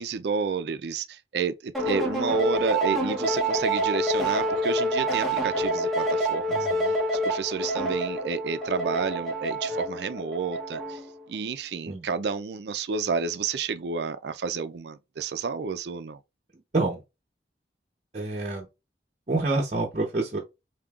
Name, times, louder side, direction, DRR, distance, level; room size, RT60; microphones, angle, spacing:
voice 1, 0.0-6.7 7.1-11.0 11.3-16.2, right 5 dB, 70° right, 0.4 m, -30 dB
sound 1, 1.7-11.1, right 1 dB, ahead, 0.9 m, -27 dB
voice 2, 6.5-6.9 11.9-12.1 16.7-17.0 18.1-18.7 19.3-20.4, right 2 dB, 40° right, 0.8 m, -27 dB
5.2 x 2.7 x 2.4 m
head